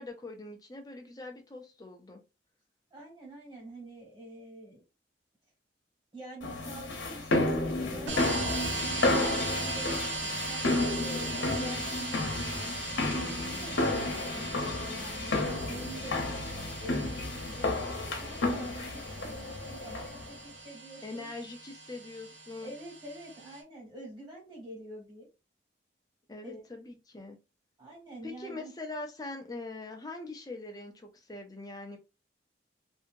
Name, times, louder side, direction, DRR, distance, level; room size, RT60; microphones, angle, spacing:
voice 1, 0.0-2.2 21.0-22.7 26.3-27.4 28.2-32.0, left 2 dB, 20° left, 4 dB, 0.5 m, -42 dB
voice 2, 2.9-4.8 6.1-9.9 10.5-16.4 16.8-17.1 17.4-20.4 20.6-21.3 22.6-25.3 26.4-26.6 27.8-28.7, right 1 dB, 25° right, -3 dB, 1.6 m, -46 dB
sound 1, 6.4-20.3, left 2 dB, 85° left, 0.9 m, -32 dB
sound 2, 7.4-17.3, left 2 dB, 35° left, 0.9 m, -50 dB
sound 3, 8.1-23.6, right 3 dB, 75° right, 0.7 m, -39 dB
2.7 x 2.7 x 2.5 m, 0.29 s
head